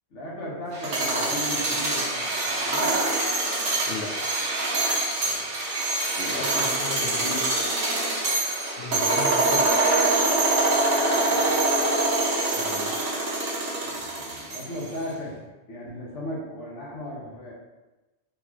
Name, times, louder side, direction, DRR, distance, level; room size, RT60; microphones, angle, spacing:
voice 1, 0.1-2.9 5.2-5.4 11.3-11.4 13.8-15.3 15.7-17.5, left 1 dB, 90° left, -4 dB, 1.5 m, -36 dB
sound 1, 0.7-14.9, right 2 dB, 85° right, 1.2 m, -24 dB
voice 2, 6.2-7.5 8.8-9.7 12.6-13.2, left 5 dB, 65° left, 3 dB, 0.8 m, -36 dB
4.2 x 4.0 x 2.9 m, 1.1 s
omnidirectional pair, 1.2 m